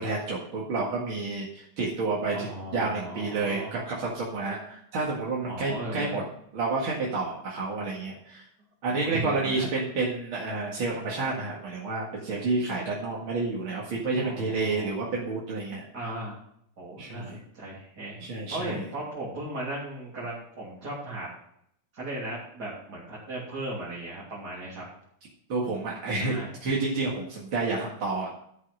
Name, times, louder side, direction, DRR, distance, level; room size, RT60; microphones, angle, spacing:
voice 1, 0.0-2.5 2.7-6.2 6.5-8.4 8.8-16.1 17.0-17.4 18.2-18.8 25.5-26.3 26.6-28.3, right 3 dB, 85° right, -5 dB, 2.8 m, -30 dB
voice 2, 2.3-3.8 5.5-6.2 8.9-9.7 14.2-15.1 15.9-16.4 16.8-18.2 18.5-21.3 21.9-24.8 26.2-26.5, right 1 dB, 50° right, -7 dB, 3.7 m, -37 dB
12.5 x 5.8 x 6.3 m, 0.70 s
omnidirectional pair, 2.2 m